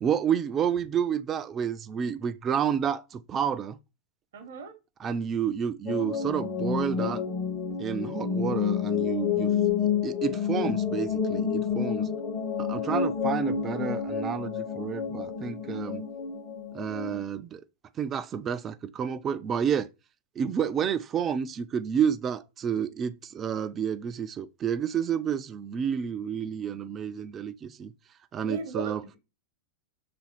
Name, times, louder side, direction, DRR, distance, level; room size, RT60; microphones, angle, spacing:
voice 1, 0.0-3.8 5.0-7.2 7.8-9.5 9.8-12.1 12.6-16.0 16.7-17.6 18.0-19.9 20.4-27.9 28.3-29.0, right 8 dB, 25° right, 0.3 m, -30 dB
voice 2, 4.3-4.7 12.0-12.2 28.5-29.2, right 3 dB, 60° right, 0.9 m, -37 dB
sound 1, 5.9-17.2, left 7 dB, 30° left, 0.8 m, -29 dB
3.4 x 2.6 x 4.5 m
figure-of-eight pair, 90°, 0 cm